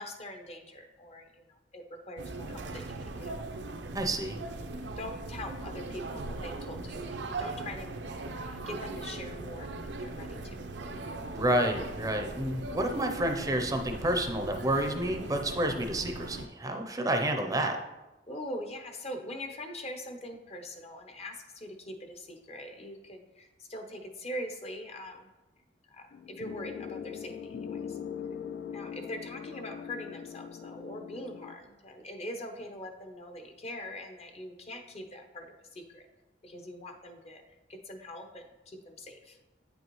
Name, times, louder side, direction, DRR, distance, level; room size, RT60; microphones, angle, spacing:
voice 1, 0.0-3.3 5.0-8.0 8.4-10.7 18.3-25.3 25.9-28.0 28.7-36.1 36.4-37.4 37.7-39.4, left 1 dB, 35° left, 5 dB, 0.7 m, -43 dB
sound 1, 2.2-16.5, right 2 dB, 75° right, 0.6 m, -39 dB
voice 2, 3.9-4.4 11.3-17.8, right 1 dB, 20° right, 4 dB, 0.6 m, -29 dB
sound 2, 26.1-31.6, left 7 dB, 70° left, 0.3 m, -41 dB
8.7 x 5.4 x 3.0 m, 1.1 s
head